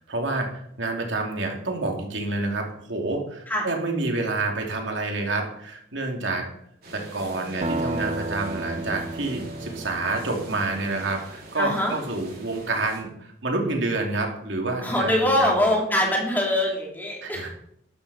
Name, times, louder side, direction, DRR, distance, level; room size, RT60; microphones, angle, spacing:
voice 1, 0.0-6.5 6.9-15.1 15.4-15.6 17.2-17.5, right 2 dB, 80° right, 1 dB, 2.8 m, -28 dB
sound 1, 6.8-13.0, right 2 dB, 50° right, 4.4 m, -43 dB
sound 2, 7.6-11.4, right 2 dB, 35° right, 0.8 m, -33 dB
voice 2, 11.6-12.0 14.8-17.5, left 1 dB, 10° left, -2 dB, 3.3 m, -23 dB
13.5 x 12.0 x 4.3 m, 0.70 s
head